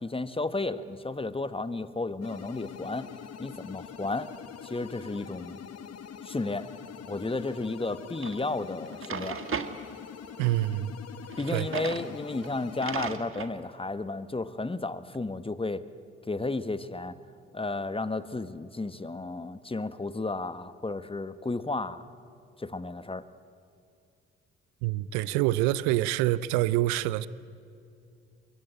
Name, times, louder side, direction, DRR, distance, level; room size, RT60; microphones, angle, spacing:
voice 1, 0.0-3.1 3.4-4.3 4.6-5.6 6.2-6.7 7.1-9.4 11.4-15.8 16.3-17.2 17.5-22.1 22.6-23.2, left 3 dB, 20° left, 1.4 m, -33 dB
sound 1, 2.2-13.2, left 8 dB, 55° left, 1.3 m, -44 dB
Drawer open or close, 8.2-8.4 8.9-9.7 11.3-12.1 12.4-12.5 12.8-13.5, right 6 dB, 45° right, 1.8 m, -35 dB
voice 2, 10.4-10.9 11.5-11.7 24.8-27.3, right 15 dB, 85° right, 0.7 m, -26 dB
23.0 x 22.5 x 9.0 m
hypercardioid pair, 45°, 29 cm